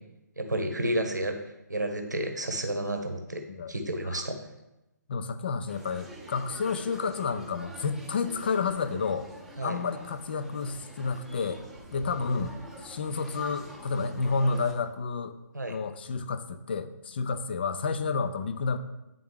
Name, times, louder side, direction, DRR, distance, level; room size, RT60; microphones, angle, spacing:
voice 1, 0.4-1.4 1.7-3.4 3.7-4.4 9.6-9.8 15.5-15.8, right 1 dB, 75° right, 5 dB, 0.9 m, -31 dB
voice 2, 5.1-9.3 9.6-11.6 11.9-12.5 12.8-15.3 15.7-18.8, left 4 dB, 35° left, 11 dB, 0.4 m, -30 dB
sound 1, 5.7-14.7, right 2 dB, 5° right, 0.8 m, -46 dB
9.3 x 3.6 x 3.5 m, 0.95 s
figure-of-eight pair, 140°, 10 cm